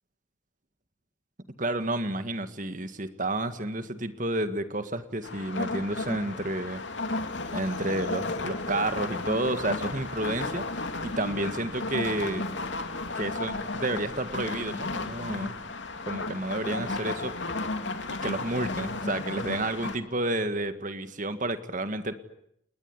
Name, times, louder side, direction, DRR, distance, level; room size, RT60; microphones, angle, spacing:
voice 1, 1.6-6.8 7.5-10.6 11.0-12.4 13.2-15.5 16.0-17.3 18.2-22.1, right 2 dB, 40° right, 10 dB, 1.9 m, -30 dB
sound 1, 5.2-20.0, left 3 dB, 65° left, 2.6 m, -33 dB
30.0 x 20.0 x 9.8 m, 0.75 s
head